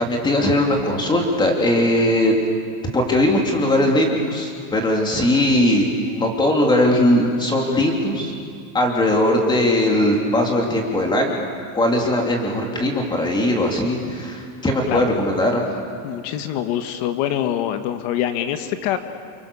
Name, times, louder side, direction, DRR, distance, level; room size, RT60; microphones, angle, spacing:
voice 1, 0.0-2.5 2.9-8.3 8.7-11.4 11.7-15.6, left 1 dB, 10° left, 1 dB, 2.9 m, -19 dB
voice 2, 16.0-19.0, left 11 dB, 40° left, 9 dB, 1.3 m, -24 dB
29.0 x 24.0 x 6.9 m, 2.2 s
supercardioid pair, 170°, 43 cm